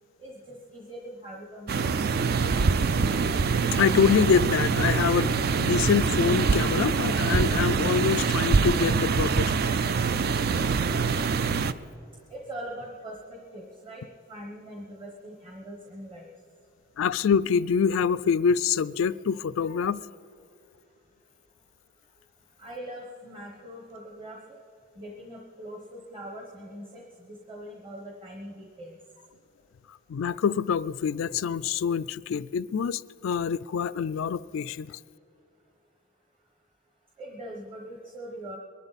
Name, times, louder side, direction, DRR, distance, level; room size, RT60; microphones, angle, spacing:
voice 1, 0.2-2.1 9.2-9.6 12.3-14.0 14.3-16.3 22.6-24.4 25.0-27.0 27.3-29.0 37.2-38.6, right 1 dB, 25° right, 1.2 m, -42 dB
sound 1, 1.7-11.7, right 5 dB, 45° right, 0.4 m, -24 dB
voice 2, 3.7-9.7 11.1-11.2 17.0-20.0 30.1-35.0, left 6 dB, 65° left, 0.3 m, -25 dB
22.0 x 11.5 x 4.1 m
head